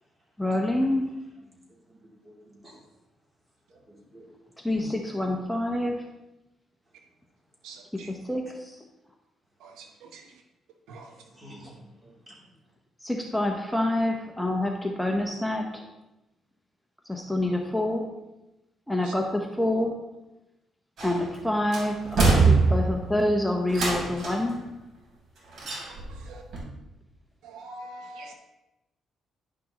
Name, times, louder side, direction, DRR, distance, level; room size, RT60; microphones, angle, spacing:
voice 1, 0.4-1.0 4.6-6.0 8.1-8.8 13.0-15.8 17.1-18.1 18.9-20.0 21.0-24.6, left 1 dB, 5° left, 1 dB, 0.9 m, -27 dB
voice 2, 1.9-2.8 3.7-4.3 4.7-4.9 11.2-12.4, equal, 20° right, -4 dB, 3.0 m, -49 dB
voice 3, 7.6-8.1 9.6-10.2 10.9-11.1 19.0-19.1 26.1-26.4 27.4-28.3, right 2 dB, 90° right, 4 dB, 0.9 m, -44 dB
sound 1, 21.0-21.4 21.7-23.1 23.7-24.5 25.6-26.2 26.5-26.6, right 4 dB, 60° right, 3.2 m, -23 dB
10.5 x 6.1 x 3.0 m, 0.97 s
cardioid pair, 90°, 0 cm